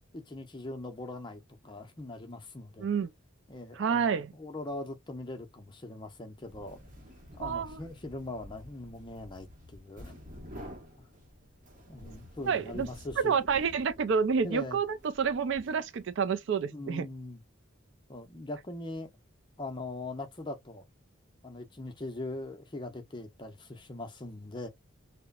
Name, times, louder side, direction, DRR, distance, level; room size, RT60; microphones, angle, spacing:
voice 1, 0.1-2.9 3.5-6.8 7.3-10.1 11.9-13.4 14.4-14.8 16.7-17.4 18.1-19.1 19.6-20.8 21.4-24.7, left 2 dB, 20° left, 0.5 m, -41 dB
voice 2, 2.8-3.1 3.8-4.3 7.4-7.8 12.4-12.9 13.2-17.1, right 6 dB, 60° right, 0.3 m, -29 dB
sound 1, 6.4-16.3, equal, 40° right, 0.8 m, -50 dB
2.9 x 2.0 x 2.3 m
head